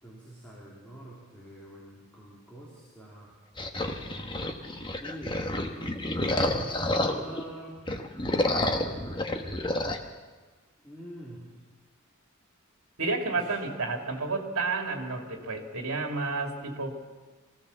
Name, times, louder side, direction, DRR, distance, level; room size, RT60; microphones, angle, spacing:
voice 1, 0.0-3.3 5.0-7.8 10.8-11.5 13.3-13.5, right 1 dB, 5° left, -6 dB, 3.8 m, -45 dB
sound 1, 3.6-7.4 7.8-10.0, left 1 dB, 20° left, 1.2 m, -29 dB
voice 2, 13.0-16.9, right 3 dB, 70° right, 3 dB, 2.7 m, -31 dB
23.5 x 17.0 x 7.1 m, 1.3 s
head